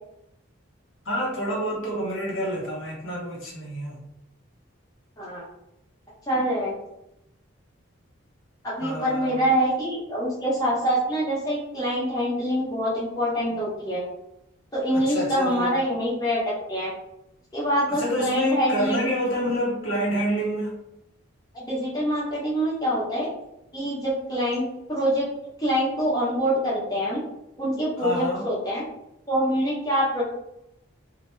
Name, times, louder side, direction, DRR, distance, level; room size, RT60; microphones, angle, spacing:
voice 1, 1.1-4.0 8.8-9.4 14.9-15.8 17.9-20.8 28.0-28.4, equal, 65° left, -3 dB, 0.8 m, -28 dB
voice 2, 6.3-6.7 8.6-14.0 14.7-16.4 16.7-16.9 17.5-19.1 21.5-23.3 23.7-25.2 25.6-27.2 27.6-28.8 29.3-30.2, equal, 20° left, -8 dB, 1.0 m, -25 dB
2.9 x 2.1 x 3.2 m, 0.84 s
head